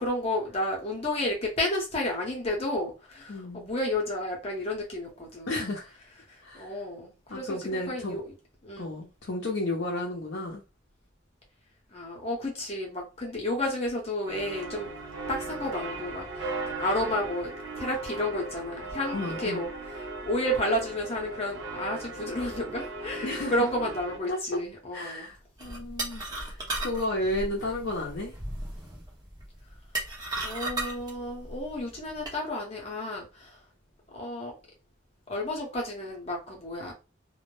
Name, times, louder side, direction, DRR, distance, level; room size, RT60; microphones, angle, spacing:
voice 1, 0.0-5.7 6.3-8.2 8.6-8.9 11.9-14.9 15.3-16.5 16.8-19.7 20.2-25.3 30.4-33.5 34.1-34.5 35.3-36.9, left 1 dB, 30° left, 0.7 m, -31 dB
voice 2, 3.3-3.7 5.5-5.9 6.4-6.8 7.3-8.2 8.8-10.6 19.1-19.6 23.2-23.5 24.3-24.4 24.9-28.4, left 1 dB, 60° left, 0.5 m, -33 dB
sound 1, 14.3-24.2, right 3 dB, 80° right, 0.8 m, -37 dB
sound 2, 25.6-32.4, right 2 dB, 20° right, 0.7 m, -36 dB
2.2 x 2.0 x 3.0 m
head